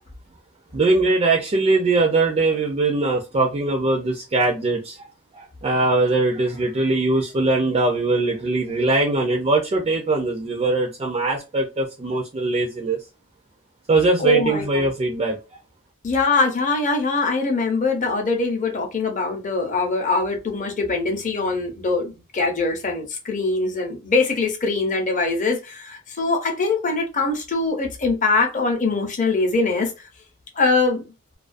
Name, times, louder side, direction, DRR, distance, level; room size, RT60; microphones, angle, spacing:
voice 1, 0.7-5.0 5.3-13.0 13.9-15.4, right 2 dB, 25° right, 0.4 m, -21 dB
voice 2, 14.2-14.9 16.0-29.9 30.6-31.0, left 3 dB, 35° left, 0.6 m, -22 dB
2.3 x 2.2 x 2.4 m
head